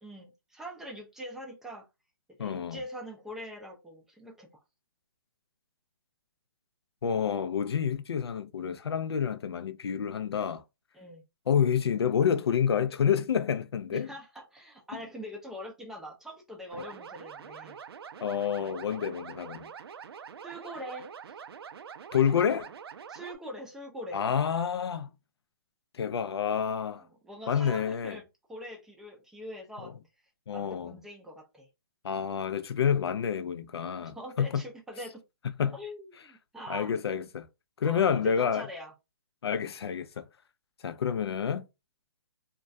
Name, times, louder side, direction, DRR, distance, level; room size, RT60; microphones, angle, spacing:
voice 1, 0.0-1.9 2.4-4.6 10.9-11.2 13.9-17.8 20.4-21.4 23.1-24.2 27.0-29.9 30.5-31.7 34.0-35.2 35.7-37.0 37.8-38.9, equal, 5° right, 0.4 m, -43 dB
voice 2, 2.4-2.8 7.0-10.6 11.5-14.1 18.2-19.7 22.1-22.7 24.1-25.1 25.9-27.0 27.5-28.2 29.8-29.9 30.5-31.0 32.0-34.6 35.6-35.8 36.7-37.5 37.8-38.7 39.4-40.2 40.8-41.6, left 7 dB, 90° left, 0.4 m, -28 dB
sound 1, 16.7-23.3, right 7 dB, 75° right, 0.4 m, -45 dB
2.3 x 2.2 x 2.5 m
hypercardioid pair, 150°, 13 cm